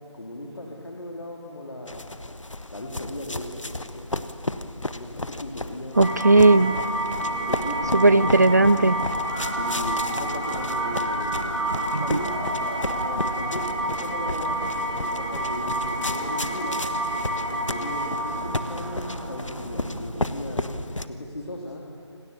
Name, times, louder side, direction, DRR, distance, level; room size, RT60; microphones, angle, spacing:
voice 1, 0.1-2.1 2.7-4.3 4.9-6.2 7.5-8.3 9.6-13.7 14.0-16.9 17.7-20.6 21.1-21.8, left 1 dB, 55° left, -1 dB, 3.4 m, -37 dB
sound 1, 1.9-21.1, left 2 dB, 85° left, 1.5 m, -34 dB
sound 2, 5.9-20.9, right 1 dB, 55° right, 6.9 m, -29 dB
voice 2, 6.0-6.7 7.9-9.0 11.9-12.2, right 2 dB, 35° right, 19 dB, 0.5 m, -17 dB
Musical instrument, 7.9-13.5, right 1 dB, 5° right, 2.0 m, -38 dB
28.0 x 19.0 x 7.1 m, 2.4 s
figure-of-eight pair, 170°, 16 cm